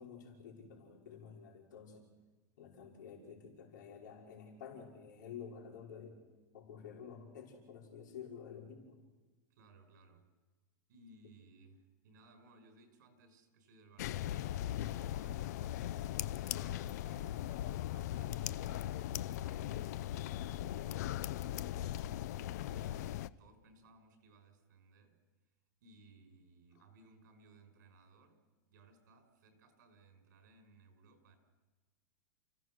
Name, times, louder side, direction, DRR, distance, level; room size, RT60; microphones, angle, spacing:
voice 1, 0.0-2.1 2.6-6.2 6.5-9.0, left 7 dB, 75° left, -1 dB, 5.5 m, -50 dB
voice 2, 9.5-10.3 10.9-15.8 16.4-19.9 20.2-22.3 22.6-25.2 25.8-31.4, right 3 dB, 70° right, 5 dB, 5.7 m, -63 dB
sound 1, 14.0-23.3, left 12 dB, 60° left, 0.6 m, -39 dB
30.0 x 16.5 x 6.4 m, 1.2 s
supercardioid pair, 165°, 10 cm